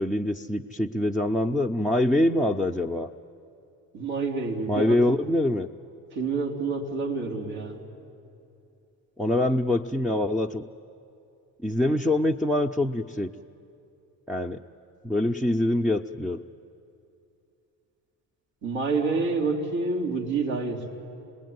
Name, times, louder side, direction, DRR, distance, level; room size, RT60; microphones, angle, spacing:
voice 1, 0.0-3.1 4.7-5.7 9.2-10.7 11.6-13.3 14.3-14.6 15.0-16.4, left 1 dB, ahead, 3 dB, 0.7 m, -24 dB
voice 2, 3.9-5.2 6.1-7.8 18.6-20.8, right 4 dB, 75° right, -1 dB, 3.5 m, -28 dB
27.5 x 20.0 x 9.5 m, 2.7 s
hypercardioid pair, 55°, 47 cm